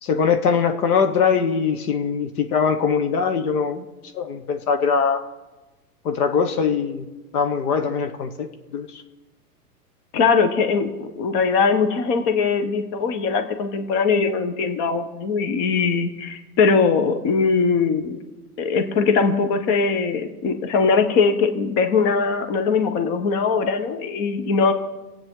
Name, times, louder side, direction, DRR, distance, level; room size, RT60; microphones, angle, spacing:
voice 1, 0.0-3.8 4.1-5.2 6.0-7.0 7.3-8.5 8.7-9.0, left 6 dB, 70° left, 7 dB, 1.4 m, -21 dB
voice 2, 10.1-18.2 18.6-24.7, left 5 dB, 40° left, 8 dB, 1.4 m, -21 dB
25.5 x 8.8 x 3.9 m, 1.2 s
hypercardioid pair, 120°, 46 cm